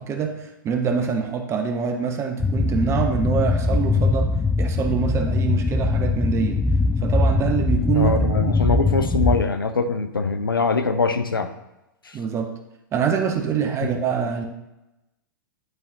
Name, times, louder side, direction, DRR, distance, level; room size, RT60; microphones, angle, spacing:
voice 1, 0.0-4.3 4.6-6.6 7.0-8.7 12.1-12.5 12.9-14.5, right 6 dB, 25° right, 5 dB, 0.9 m, -25 dB
sound 1, 2.4-9.4, left 3 dB, 5° left, 0.4 m, -21 dB
voice 2, 7.9-11.5 12.1-12.2 13.8-13.9, left 4 dB, 80° left, 9 dB, 0.6 m, -23 dB
11.0 x 4.2 x 2.8 m, 0.96 s
figure-of-eight pair, 100°, 11 cm